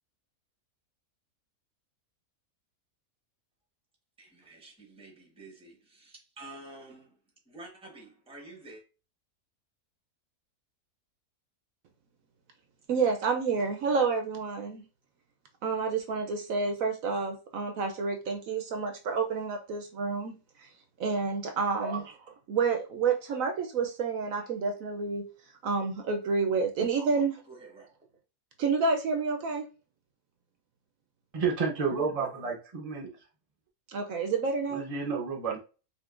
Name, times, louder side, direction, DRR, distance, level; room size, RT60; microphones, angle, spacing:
voice 1, 4.2-7.2 7.5-8.8 27.5-27.9, right 2 dB, 5° right, 0.8 m, -49 dB
voice 2, 12.9-14.8 15.6-20.7 21.0-22.2 22.5-25.3 25.6-27.4 28.6-29.7 33.9-34.8, right 4 dB, 70° right, 0.9 m, -29 dB
voice 3, 31.3-33.3 34.7-35.6, right 5 dB, 40° right, 0.5 m, -31 dB
5.2 x 2.8 x 2.4 m
omnidirectional pair, 1.6 m